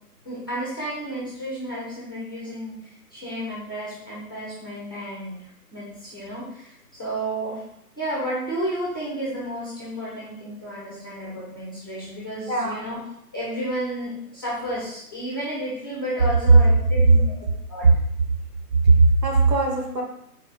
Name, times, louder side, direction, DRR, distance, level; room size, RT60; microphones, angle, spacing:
voice 1, 0.2-7.6 8.0-13.0 13.3-17.2 17.7-17.9, right 1 dB, 15° left, -7 dB, 0.5 m, -32 dB
voice 2, 12.5-12.9 16.5-16.9 17.2-17.4 18.8-20.0, right 3 dB, 85° right, -1 dB, 1.4 m, -17 dB
3.9 x 2.1 x 4.0 m, 0.76 s
figure-of-eight pair, 145°, 48 cm